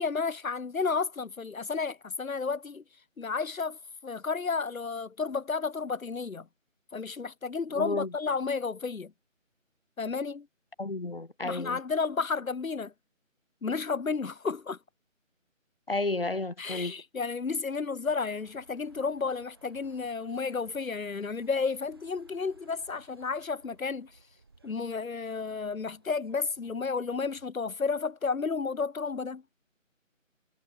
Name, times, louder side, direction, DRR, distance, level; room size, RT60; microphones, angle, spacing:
voice 1, 0.0-2.8 3.2-6.5 6.9-9.1 10.0-10.5 11.4-12.9 13.6-14.8 16.6-24.1 24.6-29.4, left 4 dB, 90° left, 1.2 m, -32 dB
voice 2, 7.8-8.1 10.8-11.8 15.9-16.9, left 2 dB, 45° left, 1.2 m, -32 dB
sound 1, 18.4-27.5, right 3 dB, 20° right, 3.5 m, -60 dB
figure-of-eight pair, 180°, 40 cm